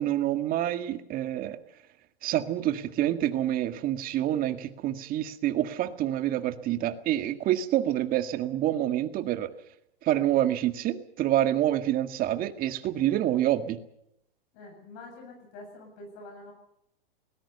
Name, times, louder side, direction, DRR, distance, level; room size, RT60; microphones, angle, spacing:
voice 1, 0.0-1.6 2.2-9.5 10.0-13.8, right 12 dB, 30° right, 9 dB, 1.8 m, -27 dB
voice 2, 14.5-16.5, left 2 dB, 45° left, 2 dB, 7.7 m, -46 dB
20.5 x 19.5 x 6.9 m, 0.77 s
hypercardioid pair, 140°, 30 cm